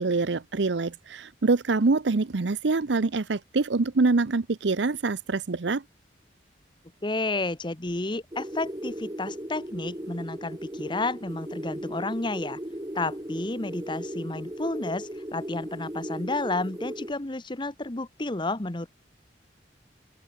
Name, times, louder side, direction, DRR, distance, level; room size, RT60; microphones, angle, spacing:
voice 1, 0.0-5.8, right 3 dB, 75° right, 0.7 m, -25 dB
voice 2, 7.0-12.6 12.9-18.9, left 2 dB, 25° left, 1.1 m, -31 dB
sound 1, 8.3-17.1, right 1 dB, 20° right, 2.1 m, -37 dB
open air
head